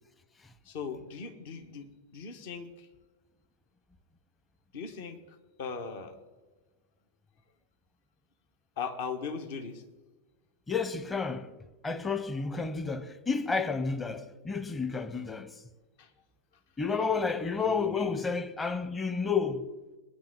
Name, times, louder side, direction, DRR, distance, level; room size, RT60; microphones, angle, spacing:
voice 1, 0.6-2.9 4.7-6.2 8.8-9.8 16.0-16.1 17.7-18.1, left 5 dB, 50° left, 1.6 m, -39 dB
voice 2, 10.7-11.5 11.8-15.6 16.8-19.7, left 5 dB, 15° left, 1.1 m, -31 dB
21.5 x 10.0 x 4.0 m
figure-of-eight pair, 90°, 0 cm